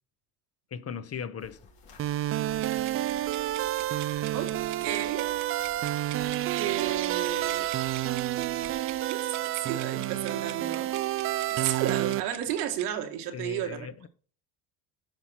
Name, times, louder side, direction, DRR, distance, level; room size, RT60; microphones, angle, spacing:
voice 1, 0.7-1.6 13.3-14.1, left 7 dB, 30° left, 0.8 m, -37 dB
sound 1, 1.4-9.0, left 3 dB, 70° left, 3.5 m, -53 dB
sound 2, 2.0-12.2, right 14 dB, 30° right, 0.4 m, -29 dB
sound 3, 2.6-13.0, right 16 dB, 65° right, 0.9 m, -45 dB
voice 2, 4.3-5.3 6.6-7.7 9.1-10.9 11.5-13.9, right 10 dB, 80° right, 1.8 m, -33 dB
8.9 x 5.7 x 4.3 m
hypercardioid pair, 80°, 46 cm